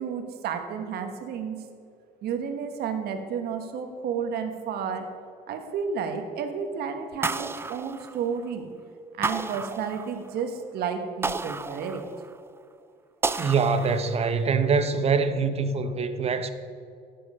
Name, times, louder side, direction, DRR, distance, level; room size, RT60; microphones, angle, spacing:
voice 1, 0.0-1.6 2.2-5.1 5.5-8.7 9.1-12.0, right 6 dB, 70° right, 1.3 m, -31 dB
sound 1, 7.2-8.6 9.2-10.4 11.2-12.5 13.2-14.4, right 3 dB, 15° right, 0.4 m, -32 dB
voice 2, 13.4-16.5, right 5 dB, 35° right, 0.8 m, -24 dB
12.0 x 7.8 x 4.9 m
cardioid pair, 110°, 17 cm